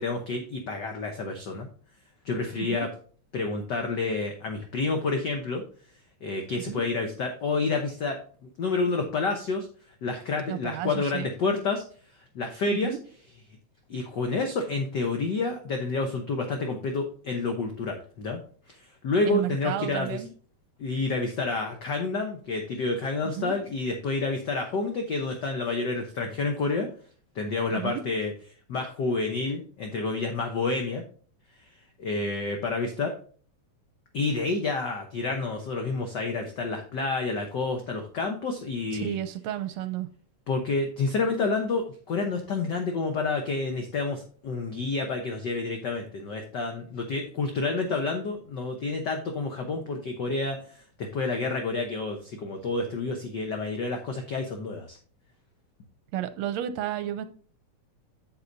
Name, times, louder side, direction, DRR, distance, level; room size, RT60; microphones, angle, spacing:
voice 1, 0.0-1.7 2.2-2.9 3.3-5.6 6.2-8.2 8.6-9.7 10.0-11.8 12.3-13.0 13.9-18.4 18.7-20.2 20.8-26.9 27.3-28.3 28.7-31.0 32.0-33.1 34.1-39.2 40.5-55.0, left 3 dB, 60° left, 4 dB, 1.1 m, -29 dB
voice 2, 2.6-2.9 6.5-6.8 10.5-11.3 12.7-13.0 19.3-20.3 23.2-23.6 27.7-28.0 38.9-40.1 56.1-57.3, right 11 dB, 75° right, 11 dB, 1.7 m, -32 dB
8.6 x 7.7 x 2.7 m, 0.43 s
omnidirectional pair, 3.3 m